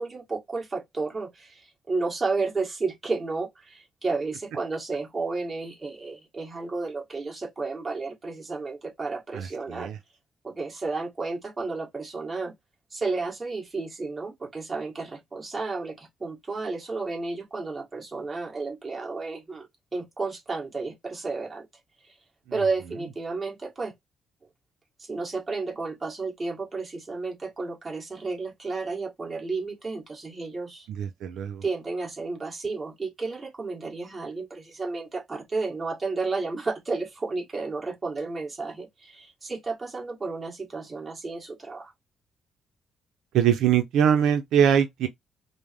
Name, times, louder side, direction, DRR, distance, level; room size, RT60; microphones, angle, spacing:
voice 1, 0.0-9.9 10.4-12.5 12.9-19.7 19.9-21.7 22.0-22.1 22.5-23.9 25.0-30.9 31.6-41.9, right 3 dB, 25° right, 1.8 m, -32 dB
voice 2, 9.3-10.0 31.0-31.6 43.3-45.1, right 9 dB, 85° right, 0.6 m, -22 dB
5.1 x 2.1 x 3.5 m
cardioid pair, 90°, 0 cm